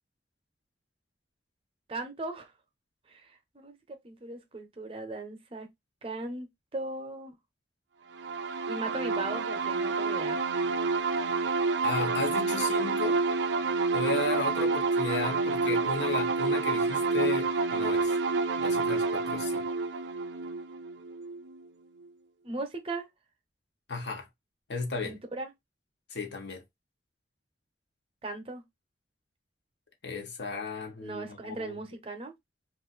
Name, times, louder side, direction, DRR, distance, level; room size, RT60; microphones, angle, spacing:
voice 1, 1.9-2.5 3.1-5.7 6.0-7.4 8.7-10.4 22.4-23.1 25.0-25.5 28.2-28.6 31.0-32.3, right 2 dB, 30° right, 0.6 m, -38 dB
sound 1, 8.2-21.7, right 4 dB, 75° right, 0.4 m, -28 dB
voice 2, 11.8-13.2 13.9-18.2 18.6-19.7 23.9-24.3 24.7-25.2 26.1-26.6 30.0-31.7, left 4 dB, 75° left, 0.8 m, -34 dB
2.5 x 2.4 x 3.7 m
head